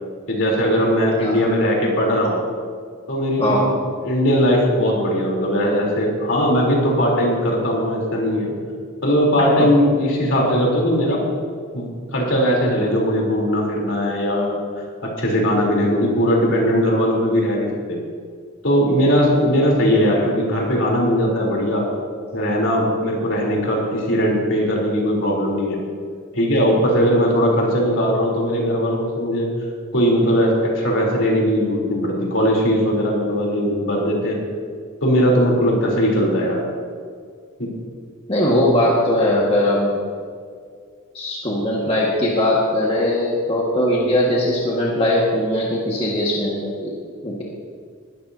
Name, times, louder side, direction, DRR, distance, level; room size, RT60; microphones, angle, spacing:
voice 1, 0.3-2.4 3.1-3.8 4.0-8.5 9.0-11.2 11.7-14.5 15.0-18.0 18.6-21.9 22.3-25.8 26.3-29.5 29.9-34.4 35.0-36.6 37.6-37.7, equal, 60° left, -2 dB, 3.7 m, -19 dB
voice 2, 3.4-3.7 9.6-9.7 38.3-40.0 41.1-46.9 47.2-47.4, left 1 dB, 30° left, -5 dB, 1.7 m, -20 dB
19.5 x 13.5 x 2.8 m, 2.1 s
head